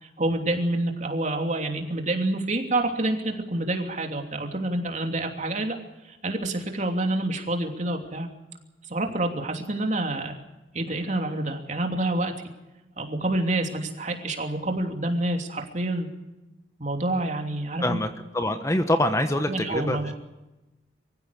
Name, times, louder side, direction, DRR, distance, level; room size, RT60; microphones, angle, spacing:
voice 1, 0.0-5.8 6.0-8.3 8.9-10.3 10.7-12.3 13.0-16.1 16.8-18.0 19.5-20.1, right 2 dB, 40° right, 4 dB, 2.9 m, -27 dB
voice 2, 18.3-20.0, left 1 dB, 15° left, 8 dB, 1.2 m, -24 dB
24.0 x 15.5 x 8.2 m, 1.0 s
head